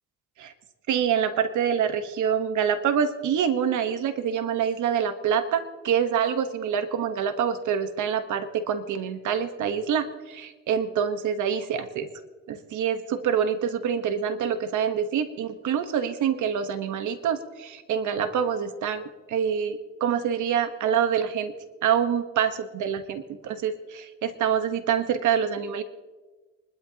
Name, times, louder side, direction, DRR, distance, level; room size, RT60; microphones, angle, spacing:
voice 1, 0.9-12.1 12.5-21.5 21.8-25.8, right 8 dB, 75° right, 10 dB, 1.2 m, -26 dB
25.0 x 12.5 x 2.9 m, 1.3 s
cardioid pair, 90°, 30 cm